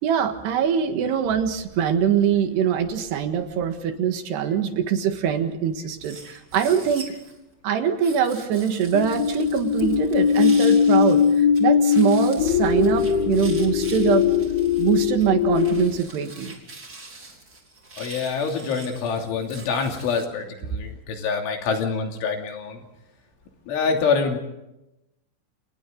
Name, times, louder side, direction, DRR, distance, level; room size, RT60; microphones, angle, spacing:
voice 1, 0.0-7.2 7.6-14.3 14.8-16.6, right 8 dB, 65° right, 6 dB, 3.6 m, -23 dB
sound 1, 6.0-7.4 8.0-11.6 11.9-20.2, right 3 dB, 20° right, 3.8 m, -43 dB
sound 2, 8.9-16.0, left 7 dB, 65° left, 3.1 m, -20 dB
voice 2, 18.0-22.8 23.7-24.4, left 5 dB, 80° left, 2 dB, 5.3 m, -26 dB
30.0 x 28.0 x 4.0 m, 0.91 s
omnidirectional pair, 5.4 m